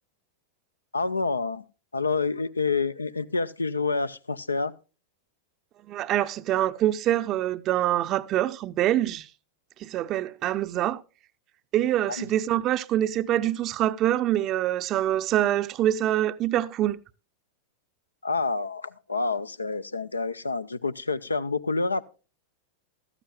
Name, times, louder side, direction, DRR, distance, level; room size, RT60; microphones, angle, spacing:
voice 1, 0.9-1.6 1.9-4.7 12.2-12.3 18.2-22.0, left 4 dB, 80° left, 0.5 m, -28 dB
voice 2, 5.9-9.3 9.8-11.0 11.7-17.0, right 12 dB, 35° right, 0.6 m, -25 dB
15.0 x 13.0 x 2.3 m
figure-of-eight pair, 90°, 0 cm